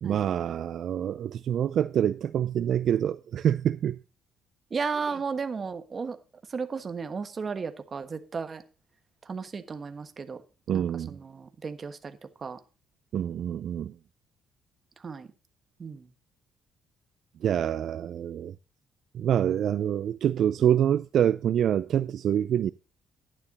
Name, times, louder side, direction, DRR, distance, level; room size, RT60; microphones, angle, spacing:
voice 1, 0.0-4.0 10.7-11.2 13.1-13.9 17.4-18.6 19.1-22.7, right 9 dB, 60° right, 0.4 m, -26 dB
voice 2, 4.7-6.2 6.5-8.6 9.2-10.4 10.7-12.6 15.0-15.3 15.8-16.1, right 5 dB, 30° right, 1.3 m, -34 dB
11.5 x 10.0 x 4.1 m
cardioid pair, 125°, 0 cm